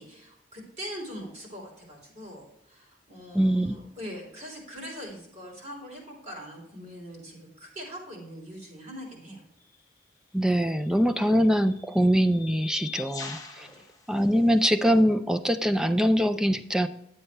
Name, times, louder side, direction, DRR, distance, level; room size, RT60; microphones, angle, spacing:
voice 1, 0.0-9.4 13.6-13.8, equal, 40° right, -2 dB, 3.3 m, -42 dB
voice 2, 3.3-3.7 10.3-13.7 14.1-16.9, equal, 5° right, 9 dB, 0.3 m, -23 dB
sound 1, 9.6-9.8 10.8-15.0, left 6 dB, 20° left, 0.8 m, -44 dB
11.0 x 8.0 x 3.3 m, 0.78 s
head